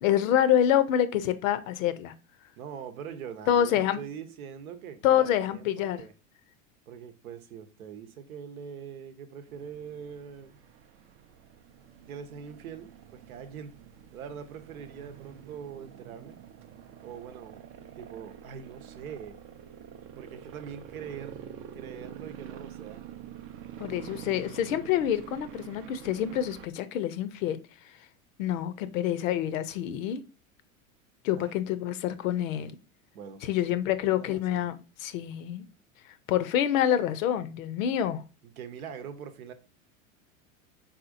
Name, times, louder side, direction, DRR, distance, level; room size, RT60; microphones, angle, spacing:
voice 1, 0.0-2.1 3.5-4.0 5.0-6.0 23.8-27.6 28.4-30.2 31.2-32.8 33.4-35.6 36.3-38.2, left 10 dB, 70° left, 0.6 m, -27 dB
voice 2, 2.6-6.1 6.9-10.6 12.0-13.7 14.1-16.4 17.0-17.7 18.0-19.4 20.2-21.4 21.7-23.0 31.3-31.5 33.1-34.7 38.6-39.5, right 7 dB, 80° right, 0.8 m, -43 dB
sound 1, 9.5-26.7, right 9 dB, 30° right, 0.4 m, -46 dB
4.2 x 3.7 x 2.5 m
hypercardioid pair, 95°, 42 cm